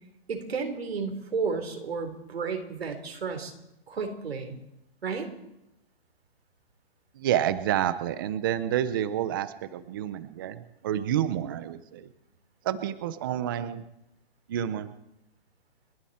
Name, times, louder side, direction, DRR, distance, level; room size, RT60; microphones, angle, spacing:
voice 1, 0.3-3.5 3.9-4.6 5.0-5.3, right 5 dB, 90° right, 5 dB, 3.9 m, -32 dB
voice 2, 7.1-12.1 12.6-13.8 14.5-14.9, right 11 dB, 20° right, 14 dB, 0.6 m, -29 dB
29.5 x 10.5 x 4.3 m, 0.85 s
hypercardioid pair, 170°, 30 cm